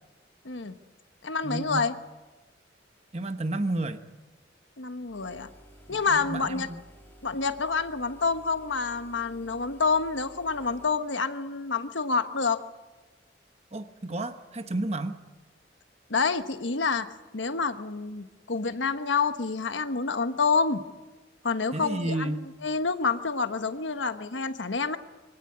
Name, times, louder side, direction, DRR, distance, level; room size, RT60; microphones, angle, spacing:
voice 1, 0.4-0.8 1.2-1.9 4.8-5.5 5.9-6.7 7.2-12.6 16.1-17.1 17.3-20.8 21.4-25.0, left 4 dB, 85° left, 10 dB, 1.3 m, -28 dB
voice 2, 1.4-1.9 3.1-4.0 5.9-6.8 13.7-15.2 21.7-22.5, right 2 dB, 35° right, 8 dB, 1.0 m, -31 dB
sound 1, 5.0-11.1, right 1 dB, 10° left, 2.4 m, -53 dB
24.0 x 17.5 x 9.7 m, 1.2 s
head